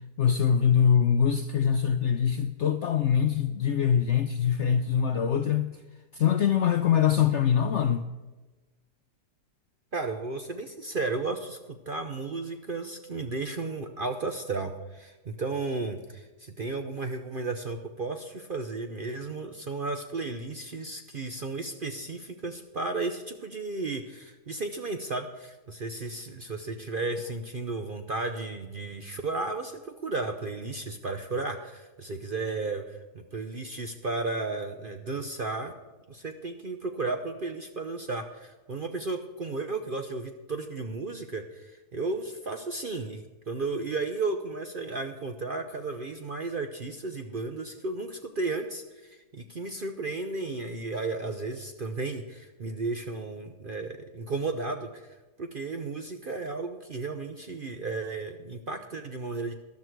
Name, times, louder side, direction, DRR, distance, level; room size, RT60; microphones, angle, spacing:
voice 1, 0.2-5.7 6.1-8.0, left 8 dB, 70° left, 0.7 m, -23 dB
voice 2, 9.9-35.7 36.1-59.5, right 3 dB, 45° right, 0.7 m, -34 dB
12.5 x 12.0 x 4.6 m
omnidirectional pair, 1.8 m